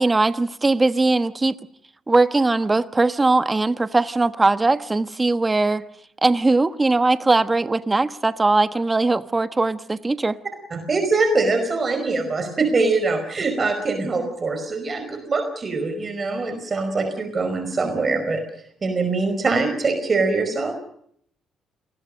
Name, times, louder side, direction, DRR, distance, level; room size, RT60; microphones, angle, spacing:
voice 1, 0.0-1.6 2.1-5.8 6.2-10.4, right 3 dB, 20° right, 1.2 m, -20 dB
voice 2, 10.7-18.4 18.8-20.7, right 3 dB, 35° right, 5.0 m, -23 dB
28.5 x 20.5 x 6.5 m
cardioid pair, 90°, 0 cm